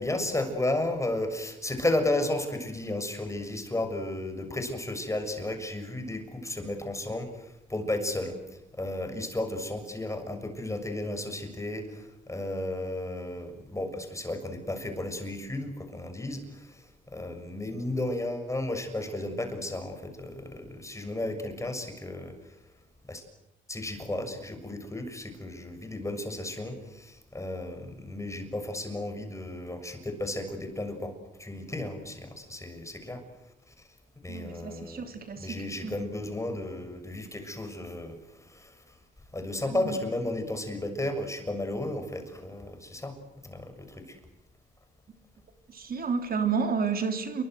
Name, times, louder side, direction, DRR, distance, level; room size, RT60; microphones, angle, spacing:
voice 1, 0.0-22.6 23.1-23.2 23.7-33.2 33.7-33.8 34.2-35.0 35.4-39.0 39.3-43.1 43.4-44.2, left 1 dB, 15° left, 6 dB, 6.9 m, -33 dB
voice 2, 34.3-36.0 39.6-40.0 45.7-47.4, right 5 dB, 50° right, 6 dB, 3.6 m, -31 dB
28.5 x 23.5 x 8.0 m, 0.95 s
cardioid pair, 90°, 20 cm